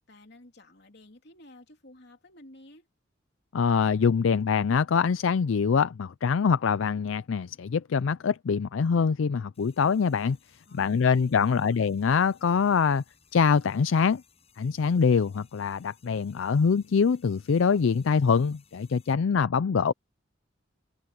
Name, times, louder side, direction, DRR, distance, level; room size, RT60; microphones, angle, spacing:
voice 1, 0.0-2.9 10.7-11.8, left 1 dB, 55° left, 3.2 m, -53 dB
voice 2, 3.5-10.4 10.8-13.0 13.3-14.2 14.6-19.9, left 6 dB, 70° left, 0.4 m, -24 dB
sound 1, 9.5-19.1, left 6 dB, 30° left, 6.6 m, -63 dB
head